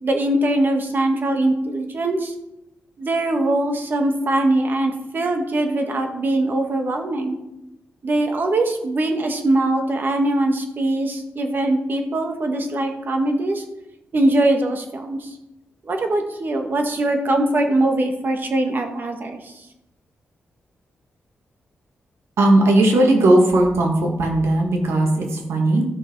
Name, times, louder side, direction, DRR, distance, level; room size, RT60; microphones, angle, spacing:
voice 1, 0.0-2.3 3.0-7.4 8.0-13.6 14.1-15.4 15.8-19.7, right 1 dB, 50° right, 4 dB, 1.8 m, -22 dB
voice 2, 22.4-25.8, right 1 dB, 85° right, 1 dB, 2.2 m, -17 dB
13.0 x 6.5 x 4.8 m, 0.89 s
cardioid pair, 90°, 4 cm